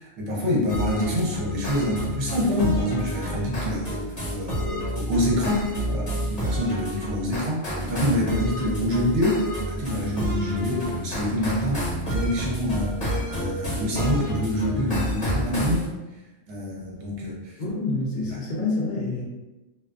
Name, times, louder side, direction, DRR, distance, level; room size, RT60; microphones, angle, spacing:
voice 1, 0.0-9.4 9.7-12.9 13.3-15.9 16.5-17.6, left 1 dB, 70° right, -3 dB, 1.0 m, -26 dB
sound 1, 0.7-15.9, equal, 35° left, 0.9 m, -29 dB
voice 2, 17.6-19.2, left 3 dB, 60° left, -4 dB, 0.5 m, -27 dB
2.4 x 2.2 x 2.3 m, 1.0 s
omnidirectional pair, 1.3 m